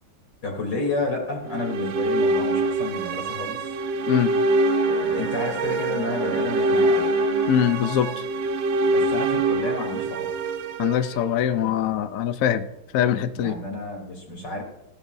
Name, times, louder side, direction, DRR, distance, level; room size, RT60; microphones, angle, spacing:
voice 1, 0.4-3.8 4.8-7.1 8.8-10.3 13.3-14.6, left 2 dB, 55° left, 0 dB, 4.0 m, -31 dB
sound 1, 1.5-11.7, right 2 dB, 70° right, 1.5 m, -24 dB
Bowed string instrument, 3.9-8.4, left 2 dB, 35° left, 2.1 m, -37 dB
voice 2, 7.5-8.2 10.8-12.7 12.9-13.6, left 10 dB, 75° left, 10 dB, 0.7 m, -22 dB
17.0 x 13.0 x 2.7 m, 0.87 s
omnidirectional pair, 2.2 m